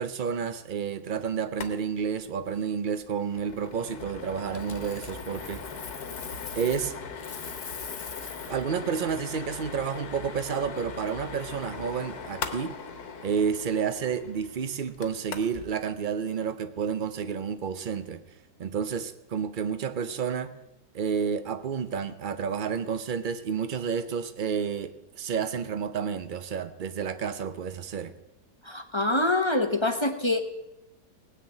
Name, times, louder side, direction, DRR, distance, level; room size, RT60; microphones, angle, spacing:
voice 1, 0.0-5.6 6.6-6.9 8.2-12.8 13.2-18.2 18.6-20.5 20.9-28.1, right 6 dB, 85° right, 11 dB, 0.4 m, -30 dB
sound 1, 1.5-1.7 2.0-2.1 2.4-2.6 3.0-15.7, left 5 dB, 65° left, 1.7 m, -40 dB
Coin (dropping), 4.5-6.9 7.2-8.6 11.4-11.7, left 6 dB, 80° left, 0.4 m, -42 dB
voice 2, 28.6-30.4, left 2 dB, 25° left, 6 dB, 0.7 m, -25 dB
18.0 x 6.6 x 8.9 m, 0.90 s
omnidirectional pair, 1.9 m